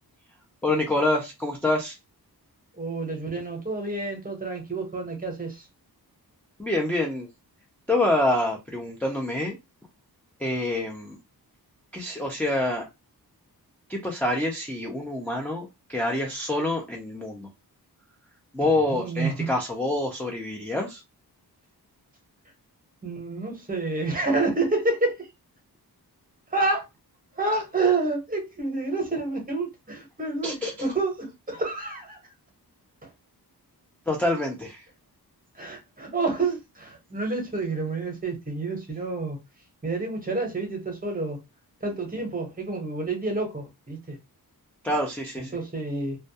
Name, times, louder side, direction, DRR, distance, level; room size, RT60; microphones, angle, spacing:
voice 1, 0.6-2.0 6.6-7.3 7.9-9.6 10.4-11.2 11.9-12.8 13.9-17.5 18.5-21.0 30.4-30.7 34.1-34.9 44.8-45.5, left 1 dB, 5° left, 0.4 m, -26 dB
voice 2, 2.7-5.7 18.6-19.5 23.0-25.3 26.5-26.9 27.3-32.2 33.0-33.1 35.5-39.4 39.8-41.4 41.8-44.2 45.4-46.2, right 3 dB, 20° right, 0.8 m, -29 dB
2.2 x 2.2 x 2.7 m
wide cardioid pair, 150°, 38 cm